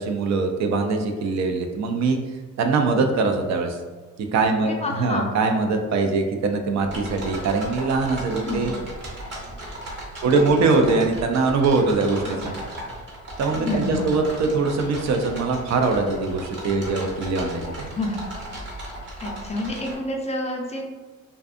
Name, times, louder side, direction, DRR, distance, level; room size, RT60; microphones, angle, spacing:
voice 1, 0.0-2.2 2.6-3.8 4.3-8.8 10.2-12.5 13.4-17.9, right 3 dB, 65° right, 4 dB, 0.4 m, -22 dB
voice 2, 4.6-5.3 8.4-8.6 12.2-12.5 13.6-14.0 18.0-18.2 19.2-20.8, left 2 dB, 25° left, 1 dB, 0.4 m, -28 dB
sound 1, 6.8-19.9, right 1 dB, 40° right, 1.0 m, -36 dB
2.5 x 2.3 x 2.4 m, 1.4 s
cardioid pair, 90°, 30 cm